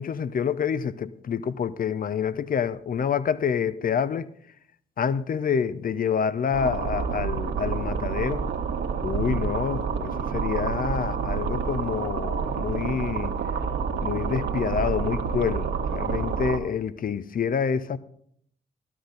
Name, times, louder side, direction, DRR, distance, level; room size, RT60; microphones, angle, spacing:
voice 1, 0.0-4.3 5.0-8.5 9.0-13.3 14.0-18.0, left 7 dB, 45° left, 0.7 m, -27 dB
sound 1, 6.5-16.6, right 6 dB, 60° right, 1.5 m, -28 dB
13.5 x 12.5 x 3.9 m
hypercardioid pair, 40°, 20 cm